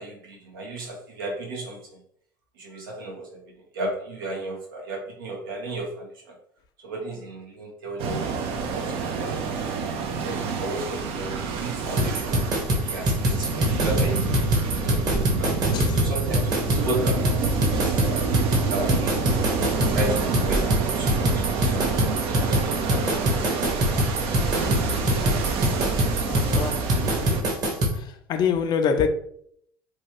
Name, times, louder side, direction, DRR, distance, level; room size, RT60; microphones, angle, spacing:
voice 1, 0.0-1.8 2.6-3.4 3.7-6.1 6.8-9.7 10.2-12.4 12.8-15.5 15.9-17.4 17.8-18.3 18.7-19.3 19.9-22.0 22.3-23.5 24.8-25.0, right 1 dB, 80° right, 1.0 m, -34 dB
sound 1, 8.0-27.4, right 4 dB, 60° right, 0.6 m, -27 dB
sound 2, 12.0-28.0, equal, 35° right, 1.2 m, -24 dB
voice 2, 26.2-26.8 28.3-29.1, left 6 dB, 40° left, 0.4 m, -25 dB
3.0 x 2.3 x 3.0 m
hypercardioid pair, 75°, 11 cm